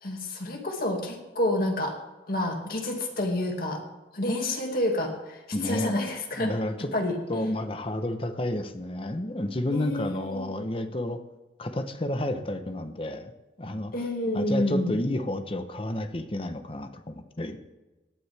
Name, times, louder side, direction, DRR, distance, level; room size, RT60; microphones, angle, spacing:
voice 1, 0.0-2.0 2.3-3.8 4.1-6.5 6.9-7.2 9.7-10.6 13.9-14.9, left 1 dB, 55° left, 2 dB, 2.3 m, -29 dB
voice 2, 5.5-6.0 6.4-6.9 7.3-11.2 11.6-13.3 13.6-14.1 14.3-17.6, left 1 dB, 30° left, 8 dB, 1.0 m, -31 dB
18.0 x 11.0 x 3.5 m, 1.1 s
head